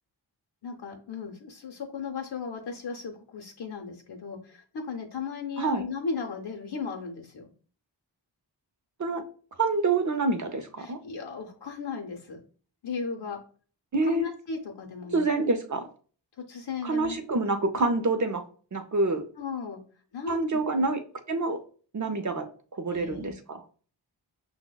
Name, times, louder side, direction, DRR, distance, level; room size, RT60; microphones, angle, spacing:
voice 1, 0.6-7.5 10.8-12.4 12.8-13.4 14.0-15.2 16.4-17.2 19.4-19.8 20.1-20.6 22.9-23.3, left 5 dB, 60° left, 2 dB, 0.6 m, -36 dB
voice 2, 9.6-11.0 13.9-14.3 15.1-15.9 16.8-18.4 18.7-19.2 20.3-21.0 21.3-21.6 21.9-22.5 22.7-23.6, right 3 dB, 40° right, 7 dB, 0.5 m, -27 dB
5.9 x 2.0 x 2.2 m, 0.42 s
wide cardioid pair, 40°, 46 cm